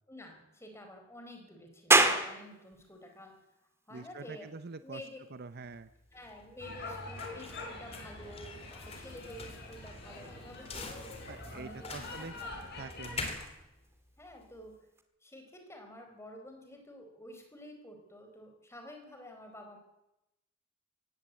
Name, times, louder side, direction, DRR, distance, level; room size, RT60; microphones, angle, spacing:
voice 1, 0.1-3.3 3.9-4.5 4.8-5.2 6.1-11.2 11.5-12.6 14.2-14.8 15.2-19.8, left 1 dB, 15° left, 3 dB, 4.3 m, -50 dB
sound 1, 1.9-15.0, right 2 dB, 15° right, 1.9 m, -36 dB
voice 2, 3.9-5.0 5.3-5.9 11.3-12.3 12.8-13.4, right 4 dB, 55° right, 12 dB, 0.7 m, -45 dB
sound 2, 5.6-14.7, left 3 dB, 30° left, 3.4 m, -46 dB
sound 3, 6.6-13.2, left 2 dB, 55° left, 6.4 m, -45 dB
19.0 x 16.5 x 8.3 m, 0.93 s
head